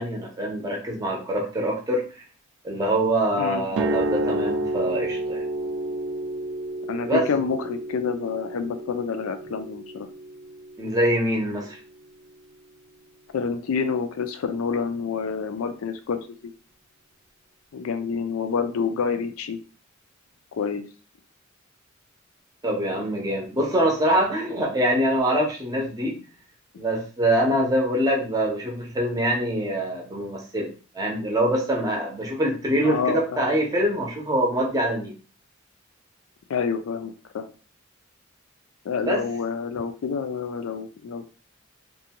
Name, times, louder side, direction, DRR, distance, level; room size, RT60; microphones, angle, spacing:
voice 1, 0.0-2.2 2.6-5.4 7.1-7.3 10.8-11.8 22.6-26.2 26.8-35.1 39.0-39.2, right 1 dB, 20° right, 0 dB, 0.6 m, -24 dB
sound 1, 3.7-11.7, right 1 dB, 60° right, 0.3 m, -30 dB
voice 2, 6.9-10.1 13.3-16.2 17.7-19.6 20.5-20.8 27.5-27.7 32.8-33.2 36.5-37.5 38.9-41.3, left 5 dB, 85° left, 9 dB, 0.4 m, -28 dB
2.5 x 2.2 x 2.8 m, 0.37 s
head